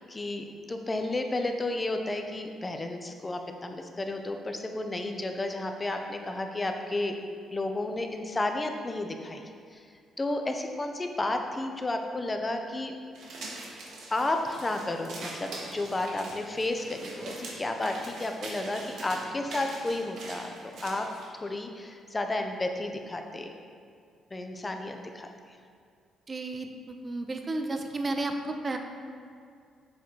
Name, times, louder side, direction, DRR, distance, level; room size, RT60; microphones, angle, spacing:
voice 1, 0.0-7.2 7.5-9.8 10.2-13.0 14.1-20.5 20.8-21.1 21.4-23.5 24.3-25.3, left 2 dB, 20° left, 4 dB, 0.6 m, -32 dB
sound 1, 13.1-21.3, right 2 dB, 75° right, 1.3 m, -43 dB
voice 2, 26.3-28.8, right 2 dB, 30° right, 5 dB, 0.7 m, -32 dB
7.2 x 3.9 x 4.6 m, 2.3 s
cardioid pair, 90°, 0 cm